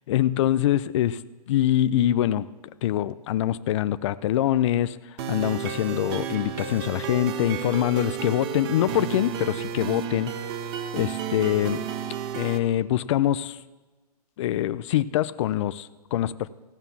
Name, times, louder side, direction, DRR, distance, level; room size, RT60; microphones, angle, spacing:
voice 1, 0.1-1.2 1.5-2.5 2.8-5.0 5.3-10.3 10.9-11.8 12.3-13.6 14.4-16.5, left 12 dB, 50° left, 14 dB, 0.4 m, -24 dB
sound 1, 5.2-12.6, right 8 dB, 40° right, 0.9 m, -32 dB
15.0 x 5.6 x 7.3 m, 1.3 s
hypercardioid pair, 130°, 20 cm